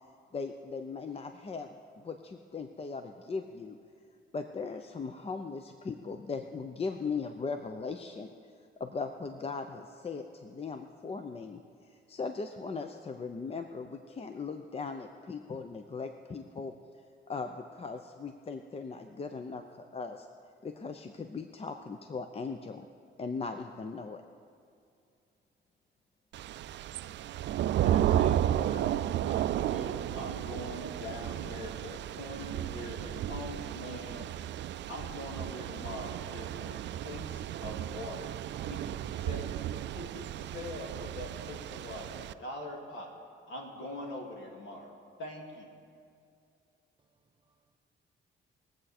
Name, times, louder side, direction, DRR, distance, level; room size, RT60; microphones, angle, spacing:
voice 1, 0.3-1.7 2.0-3.8 4.3-8.3 8.8-11.6 11.9-16.7 17.3-20.3 20.6-22.9 23.2-24.2, left 4 dB, 30° left, 6 dB, 0.6 m, -38 dB
Thunder / Rain, 26.3-42.3, right 12 dB, 65° right, 0.4 m, -33 dB
voice 2, 27.8-34.3 34.9-38.3 38.6-43.1 43.5-45.7, left 1 dB, 70° left, 0 dB, 2.4 m, -43 dB
voice 3, 47.0-47.8, right 4 dB, 25° right, 7 dB, 1.0 m, -76 dB
21.5 x 7.9 x 4.2 m, 2.4 s
cardioid pair, 90°, 20 cm